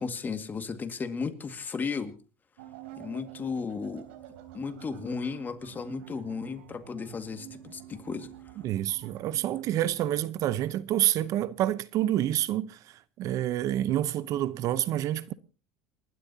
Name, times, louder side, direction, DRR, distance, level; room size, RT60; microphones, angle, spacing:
voice 1, 0.0-2.2 3.0-4.1 4.5-8.3, left 5 dB, 25° left, 2.0 m, -34 dB
sound 1, 2.6-9.6, right 12 dB, 85° right, 3.5 m, -48 dB
voice 2, 8.6-15.3, right 12 dB, 55° right, 0.8 m, -28 dB
29.0 x 12.0 x 2.8 m
supercardioid pair, 105°, 7 cm